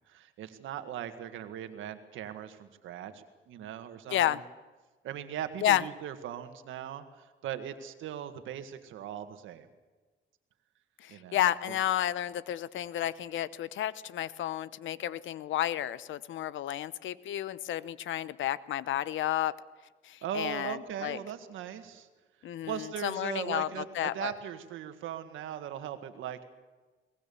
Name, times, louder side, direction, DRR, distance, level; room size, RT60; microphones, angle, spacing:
voice 1, 0.1-4.4 5.0-9.7 11.1-11.8 20.2-22.1 22.6-26.4, right 10 dB, 85° right, 9 dB, 1.8 m, -39 dB
voice 2, 4.1-4.4 5.6-5.8 11.0-19.5 20.0-21.2 22.4-24.3, left 12 dB, 75° left, 17 dB, 0.8 m, -31 dB
22.5 x 19.0 x 7.1 m, 1.3 s
cardioid pair, 90°, 20 cm